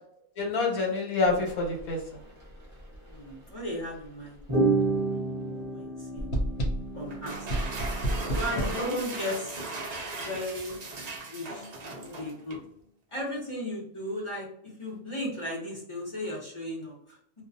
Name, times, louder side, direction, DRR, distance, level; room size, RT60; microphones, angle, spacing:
voice 1, 0.4-2.2 8.5-9.0, left 3 dB, 80° left, 0 dB, 1.3 m, -28 dB
sound 1, 1.3-1.4 1.8-2.0 2.8-3.2 4.5-8.8, right 3 dB, 25° right, 0.8 m, -30 dB
voice 2, 3.0-4.4 5.1-5.2 5.5-6.3 6.9-7.7 8.4-9.6 10.2-10.8 11.2-12.6 13.1-17.2, left 1 dB, 25° left, -4 dB, 0.8 m, -36 dB
sound 2, 6.2-7.0 7.5-8.9, right 1 dB, 55° left, 0.8 m, -30 dB
sound 3, 7.1-12.7, right 3 dB, 75° right, 0.3 m, -38 dB
2.4 x 2.3 x 2.6 m, 0.66 s
omnidirectional pair, 1.5 m